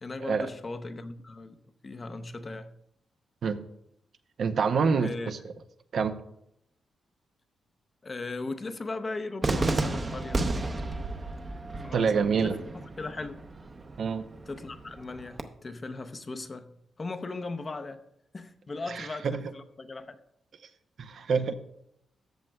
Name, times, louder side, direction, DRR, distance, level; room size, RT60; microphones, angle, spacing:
voice 1, 0.0-1.6 1.8-2.7 5.0-5.3 8.0-10.4 11.7-13.4 14.5-18.0 18.3-20.2, left 3 dB, 35° left, 0.7 m, -38 dB
voice 2, 4.4-5.4 5.9-6.1 11.9-12.6 14.0-14.2 18.9-19.4 21.0-21.5, right 5 dB, 65° right, 0.6 m, -26 dB
Cheering / Fireworks, 9.4-15.4, right 2 dB, 35° right, 0.7 m, -33 dB
13.5 x 7.6 x 2.3 m
cardioid pair, 75°, 0 cm